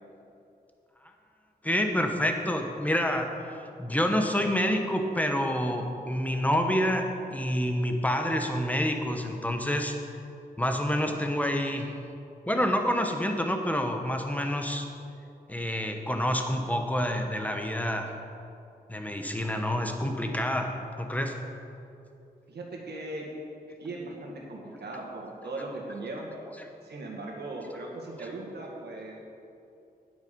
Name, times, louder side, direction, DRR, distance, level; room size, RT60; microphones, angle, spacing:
voice 1, 1.6-3.3 3.8-10.0 10.6-11.9 12.5-14.9 15.5-18.1 18.9-21.4, equal, 10° left, 4 dB, 0.9 m, -28 dB
voice 2, 22.5-23.3 23.8-26.3 26.8-29.2, right 2 dB, 80° right, -1 dB, 1.9 m, -38 dB
9.5 x 8.7 x 5.2 m, 2.7 s
wide cardioid pair, 115°, 17 cm